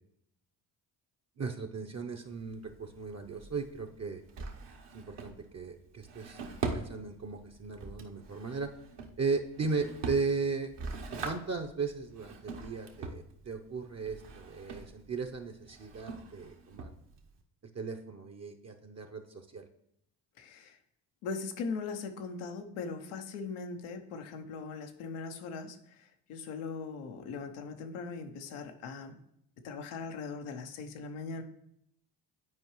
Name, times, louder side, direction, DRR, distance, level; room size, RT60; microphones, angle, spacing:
voice 1, 1.4-4.2 4.9-6.4 6.7-8.7 9.2-10.7 11.2-16.9 17.7-19.7, right 4 dB, 35° right, 3 dB, 0.7 m, -36 dB
Drawer open or close, 2.2-17.4, right 4 dB, 60° right, 1.1 m, -43 dB
voice 2, 20.4-20.8 21.2-29.2 29.6-31.4, left 4 dB, 85° left, 6 dB, 0.9 m, -40 dB
9.6 x 4.6 x 3.1 m, 0.75 s
hypercardioid pair, 50°, 48 cm